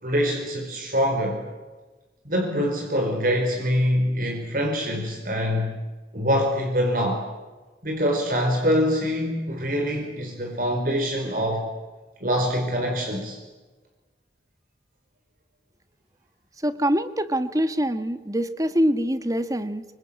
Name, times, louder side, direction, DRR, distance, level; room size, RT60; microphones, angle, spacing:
voice 1, 0.0-1.4 2.2-5.7 6.1-7.2 7.8-11.7 12.2-13.4, equal, 50° right, 2 dB, 4.5 m, -24 dB
voice 2, 16.6-19.8, equal, 20° right, 11 dB, 1.4 m, -24 dB
26.5 x 24.5 x 8.6 m, 1.2 s
head